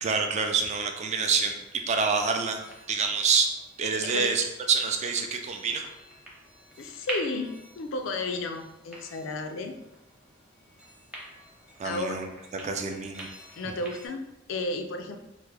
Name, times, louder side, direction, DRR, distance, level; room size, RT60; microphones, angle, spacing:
voice 1, 0.0-1.5 1.9-2.6 2.9-3.5 3.8-5.8 11.8-12.3 12.6-13.3, right 5 dB, 35° right, 4 dB, 0.3 m, -26 dB
sound 1, 1.5-14.1, right 1 dB, 5° right, 0.7 m, -46 dB
voice 2, 6.8-9.7 11.8-12.2 13.6-15.2, left 2 dB, 70° left, 6 dB, 0.4 m, -33 dB
3.4 x 2.1 x 3.2 m, 0.92 s
head